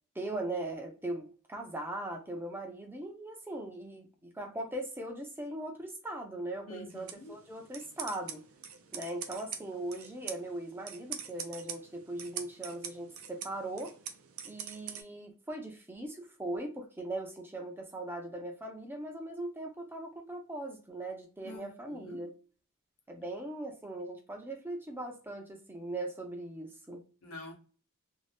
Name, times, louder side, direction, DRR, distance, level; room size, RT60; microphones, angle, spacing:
voice 1, 0.1-8.4 8.9-14.0 14.4-22.3 23.1-27.0, right 1 dB, 10° right, 0.5 m, -40 dB
voice 2, 6.7-7.4 21.4-22.3 27.2-27.5, left 2 dB, 80° left, 0.9 m, -47 dB
sound 1, 6.9-15.0, right 8 dB, 75° right, 0.5 m, -44 dB
2.6 x 2.2 x 3.3 m
head